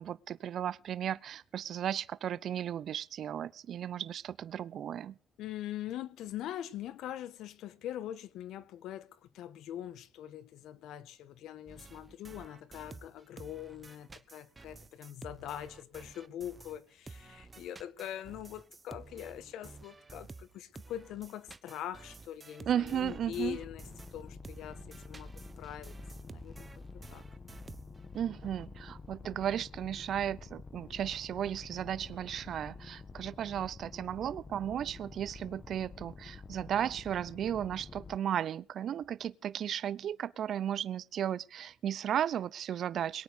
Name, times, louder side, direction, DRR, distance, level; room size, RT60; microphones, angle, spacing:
voice 1, 0.0-5.2 22.7-23.6 28.1-43.2, right 10 dB, 65° right, 0.7 m, -35 dB
voice 2, 5.4-23.8 24.1-25.9 26.2-26.7 27.1-27.2, left 11 dB, 85° left, 1.3 m, -43 dB
sound 1, 11.7-16.8 17.1-28.2, right 3 dB, 25° right, 1.2 m, -52 dB
sound 2, 22.8-38.2, left 4 dB, 35° left, 1.7 m, -49 dB
22.0 x 9.4 x 5.2 m
cardioid pair, 90°, 0 cm